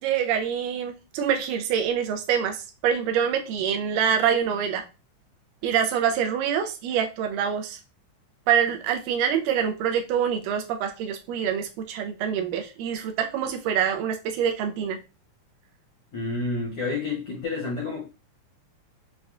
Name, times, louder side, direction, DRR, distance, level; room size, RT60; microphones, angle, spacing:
voice 1, 0.0-4.8 5.6-7.8 8.5-15.0, right 8 dB, 80° right, 6 dB, 2.0 m, -25 dB
voice 2, 16.1-18.0, left 3 dB, 70° left, -4 dB, 1.3 m, -29 dB
6.1 x 2.2 x 2.4 m, 0.31 s
omnidirectional pair, 3.8 m